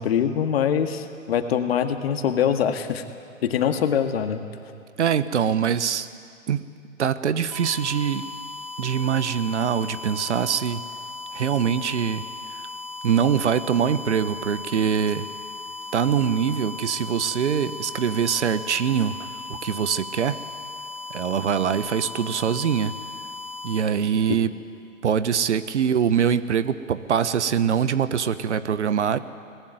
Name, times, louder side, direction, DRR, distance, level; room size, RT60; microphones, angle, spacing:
voice 1, 0.0-3.0 3.4-4.4, left 8 dB, 50° left, 7 dB, 1.9 m, -23 dB
voice 2, 5.0-6.1 6.5-6.6 7.0-8.2 8.8-10.8 11.3-12.3 13.0-15.3 15.9-20.4 21.1-23.0 23.6-24.6 25.0-29.2, right 8 dB, 60° right, 14 dB, 1.1 m, -23 dB
sound 1, 7.5-23.8, left 3 dB, 5° right, 3.9 m, -37 dB
23.0 x 19.5 x 9.5 m, 2.4 s
figure-of-eight pair, 125°, 40 cm